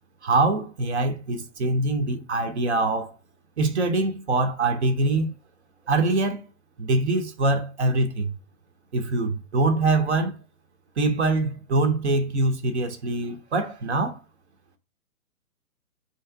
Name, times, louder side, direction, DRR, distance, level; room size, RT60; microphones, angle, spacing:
voice 1, 0.2-3.1 3.6-5.3 5.9-6.4 6.8-8.3 8.9-10.4 11.0-14.2, right 2 dB, 50° right, 0.9 m, -24 dB
3.1 x 2.9 x 4.5 m
figure-of-eight pair, 125°, 45 cm